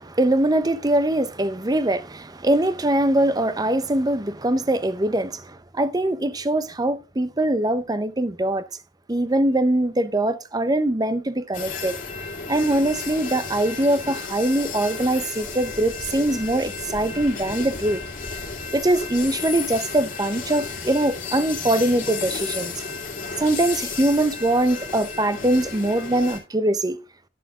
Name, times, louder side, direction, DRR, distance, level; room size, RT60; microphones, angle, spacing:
voice 1, 0.0-8.6 9.1-12.0 12.5-18.0 18.7-22.7 23.4-27.0, right 1 dB, 20° right, 0.6 m, -22 dB
sound 1, 11.5-26.4, left 5 dB, 40° left, 2.7 m, -33 dB
11.0 x 11.0 x 2.4 m
head